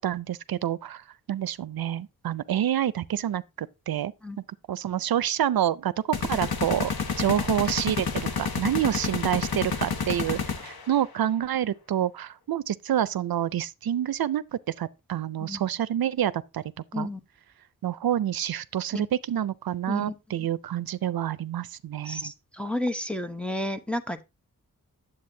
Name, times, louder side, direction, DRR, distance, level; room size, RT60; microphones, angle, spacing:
voice 1, 0.0-4.1 4.7-6.9 7.2-16.6 17.0-17.1 17.8-22.3, right 10 dB, 80° right, 0.5 m, -28 dB
sound 1, 6.1-11.0, left 5 dB, 85° left, 1.3 m, -29 dB
voice 2, 22.1-24.2, left 1 dB, 5° left, 0.9 m, -31 dB
9.6 x 7.7 x 2.7 m
wide cardioid pair, 90°, 36 cm